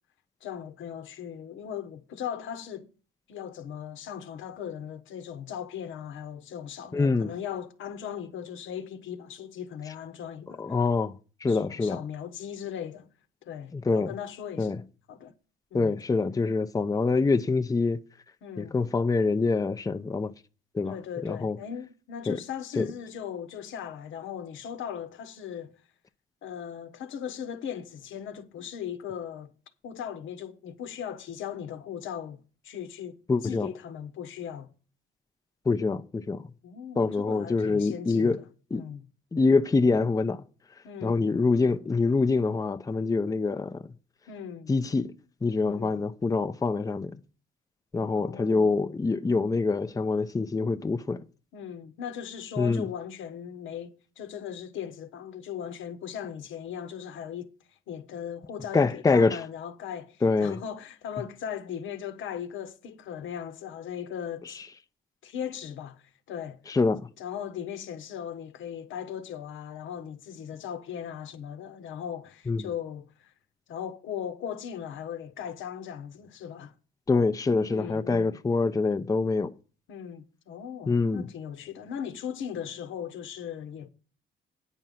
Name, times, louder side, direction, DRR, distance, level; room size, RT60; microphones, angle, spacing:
voice 1, 0.4-2.9 3.3-10.7 11.5-13.1 13.4-14.7 15.1-15.3 15.7-16.0 18.4-18.8 20.9-25.7 26.4-29.5 29.8-33.2 33.4-34.7 36.6-38.4 38.7-39.0 40.8-41.3 44.3-44.7 45.7-46.0 48.1-48.7 51.5-57.5 57.9-64.6 65.2-66.6 67.2-73.3 73.7-76.7 77.7-78.4 79.9-83.9, left 8 dB, 80° left, 1.2 m, -38 dB
voice 2, 6.9-7.3 10.6-11.1 11.4-12.0 13.7-14.1 14.6-14.8 15.7-18.0 18.6-20.3 20.7-21.0 21.2-21.6 22.3-22.4 22.8-22.9 33.3-33.7 35.7-36.4 37.0-38.4 38.7-38.8 39.3-40.4 41.0-43.8 44.7-45.1 45.4-47.2 47.9-51.2 52.6-52.9 58.7-59.4 60.2-60.6 64.5-64.6 66.7-67.1 72.5-72.6 77.1-79.5 80.9-81.3, left 3 dB, 15° left, 0.6 m, -25 dB
9.0 x 5.5 x 7.6 m
cardioid pair, 90°, 20 cm